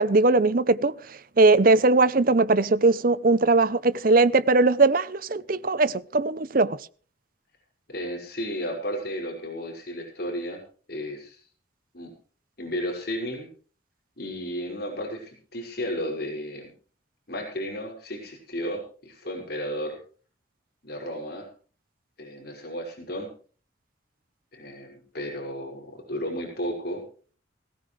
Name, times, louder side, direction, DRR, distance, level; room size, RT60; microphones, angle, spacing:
voice 1, 0.0-6.8, right 3 dB, 45° right, 0.7 m, -20 dB
voice 2, 7.9-10.6 10.9-11.4 11.9-12.1 12.6-13.5 14.2-16.7 17.3-20.0 20.8-21.5 22.2-23.3 24.5-27.0, equal, 50° left, 5.6 m, -33 dB
19.0 x 17.0 x 3.3 m
head